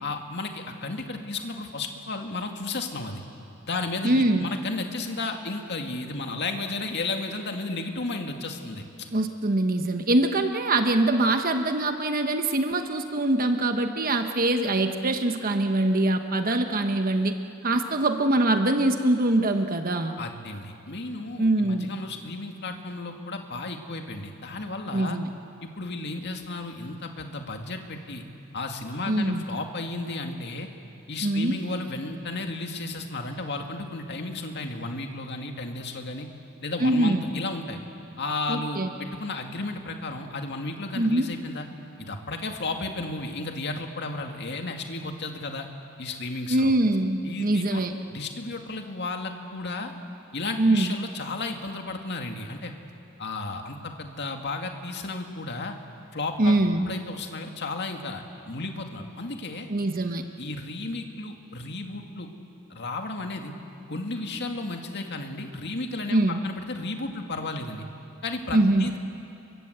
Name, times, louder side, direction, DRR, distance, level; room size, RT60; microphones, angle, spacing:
voice 1, 0.0-3.2 3.6-8.8 20.2-25.2 25.6-28.2 28.5-30.7 31.1-36.3 36.6-37.8 38.2-41.7 42.0-45.7 46.0-46.7 47.2-47.9 48.1-49.9 50.3-52.7 53.2-55.8 56.1-56.6 56.8-59.7 60.4-62.3 62.7-63.5 63.9-67.9 68.2-69.0, left 2 dB, 50° left, 4 dB, 2.1 m, -33 dB
voice 2, 4.0-4.5 9.1-17.4 17.6-20.2 21.4-21.9 24.9-25.3 29.1-29.4 31.2-31.6 36.8-37.2 38.5-38.9 40.9-41.3 46.5-47.9 50.6-50.9 56.4-56.9 59.7-60.2 66.1-66.4 68.5-68.9, right 2 dB, 40° right, 6 dB, 1.1 m, -23 dB
29.0 x 23.5 x 8.0 m, 2.7 s
head